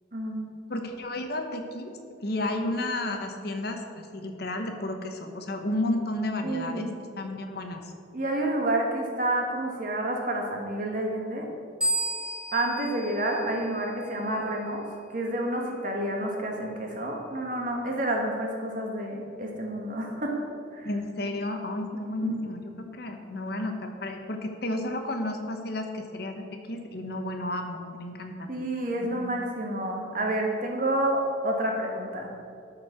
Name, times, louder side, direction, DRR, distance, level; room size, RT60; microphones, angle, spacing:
voice 1, 0.1-0.5 6.4-6.9 8.1-11.5 12.5-14.8 15.1-20.3 20.7-20.9 22.2-22.4 28.5-32.3, right 1 dB, 45° right, 0 dB, 1.5 m, -29 dB
voice 2, 0.7-1.9 2.2-6.9 7.2-7.9 20.8-28.5 29.0-29.3, left 1 dB, 55° left, 5 dB, 0.9 m, -32 dB
sound 1, 11.8-14.3, right 1 dB, 5° right, 0.7 m, -32 dB
12.5 x 4.6 x 5.8 m, 2.5 s
head